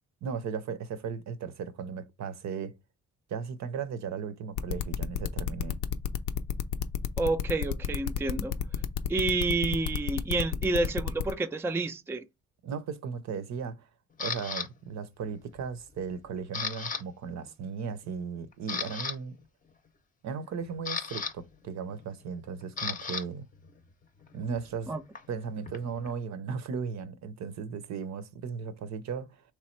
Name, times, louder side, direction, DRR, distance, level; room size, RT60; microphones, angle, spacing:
voice 1, 0.2-2.7 3.3-5.8 12.6-13.9 14.2-19.4 20.2-23.5 24.3-24.9 25.3-29.4, right 6 dB, 65° right, 0.7 m, -36 dB
sound 1, 4.6-11.3, left 9 dB, 80° left, 0.6 m, -31 dB
voice 2, 7.2-8.5 9.1-12.2 24.9-25.0, right 3 dB, 10° right, 0.4 m, -29 dB
Camera, 14.2-14.7 15.3-15.6 15.9-17.0 17.3-17.5 18.0-18.1 18.5-19.2 20.3-23.2 23.5-26.1, left 5 dB, 25° left, 0.7 m, -36 dB
3.4 x 3.1 x 4.4 m
cardioid pair, 90°, 30 cm